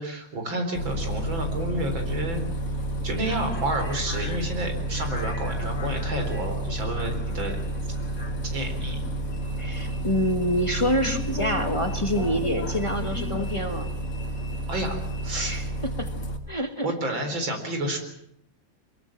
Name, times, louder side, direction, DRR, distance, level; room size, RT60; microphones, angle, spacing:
voice 1, 0.0-2.4 3.0-7.6 8.5-9.0 14.7-15.0 15.2-15.6 16.8-18.0, right 1 dB, 90° right, 5 dB, 4.9 m, -30 dB
Bus, 0.7-16.4, right 1 dB, 45° left, 2.7 m, -30 dB
voice 2, 9.6-13.9 15.3-16.1 16.5-16.9, equal, 15° left, 6 dB, 1.5 m, -27 dB
23.0 x 22.0 x 7.4 m, 0.73 s
omnidirectional pair, 2.1 m